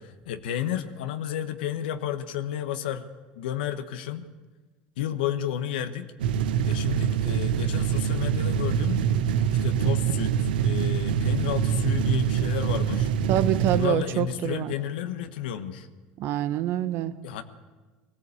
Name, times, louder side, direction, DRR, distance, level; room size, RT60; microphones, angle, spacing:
voice 1, 0.0-3.1 3.3-4.3 5.0-6.1 6.6-9.0 9.6-13.1 13.7-15.9 17.2-17.4, left 10 dB, 85° left, 8 dB, 1.2 m, -31 dB
sound 1, 6.2-13.9, right 8 dB, 85° right, 1.1 m, -25 dB
voice 2, 13.3-14.7 16.2-17.1, right 12 dB, 60° right, 12 dB, 1.3 m, -26 dB
20.0 x 16.0 x 8.5 m, 1.3 s
supercardioid pair, 95°, 5 cm